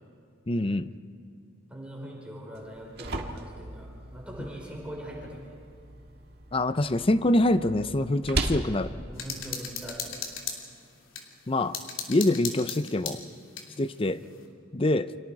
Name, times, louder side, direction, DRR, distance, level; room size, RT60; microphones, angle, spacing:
voice 1, 0.5-0.9 6.5-9.0 11.5-11.8 12.1-13.2 13.8-14.2 14.7-15.1, left 1 dB, 25° left, 13 dB, 0.6 m, -25 dB
voice 2, 1.7-5.6 7.8-7.9 9.1-10.2 14.1-14.4, right 1 dB, 5° right, -2 dB, 4.5 m, -42 dB
sound 1, 2.5-10.5, right 2 dB, 50° right, 1.8 m, -38 dB
sound 2, 9.2-11.3 11.7-13.7, left 6 dB, 75° left, 2.9 m, -36 dB
29.5 x 25.5 x 4.8 m, 2.4 s
head